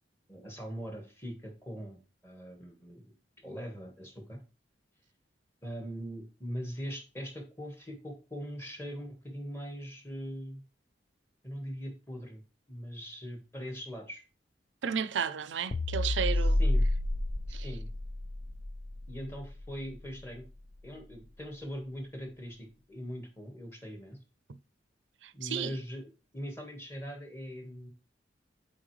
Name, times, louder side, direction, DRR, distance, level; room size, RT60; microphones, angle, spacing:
voice 1, 0.3-2.0 2.2-3.1 3.4-4.4 5.6-10.6 11.4-12.4 12.7-14.2 16.4-16.9 17.5-17.9 19.1-20.5 20.8-24.2 25.3-27.9, equal, 15° left, 1.5 m, -41 dB
voice 2, 14.8-16.6 17.5-17.7 25.2-25.7, right 7 dB, 85° right, 0.5 m, -33 dB
sound 1, 15.7-20.2, left 1 dB, 45° left, 0.5 m, -30 dB
7.5 x 4.3 x 3.2 m
head